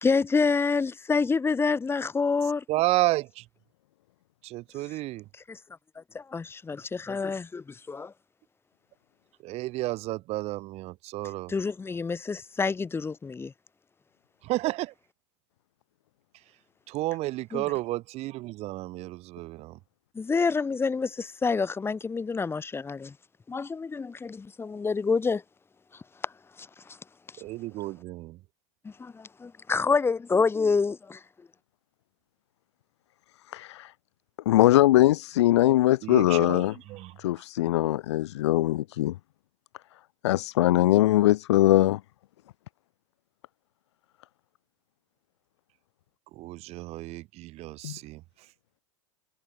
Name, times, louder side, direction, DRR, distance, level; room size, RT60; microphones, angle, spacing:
voice 1, 0.0-2.6 5.5-5.6 6.0-8.1 11.5-13.5 17.5-17.6 20.1-23.1 23.5-25.4 26.6-27.0 28.8-31.2, left 4 dB, 15° left, 3.0 m, -27 dB
voice 2, 2.7-3.4 4.4-5.2 9.4-11.5 14.4-14.9 16.9-19.8 27.4-28.4 36.0-37.2 46.3-48.2, right 18 dB, 40° right, 2.2 m, -31 dB
voice 3, 33.5-33.9 34.4-36.7 37.2-39.2 40.2-42.0 47.8-48.0, left 15 dB, 60° left, 2.7 m, -21 dB
figure-of-eight pair, 90°, 16 cm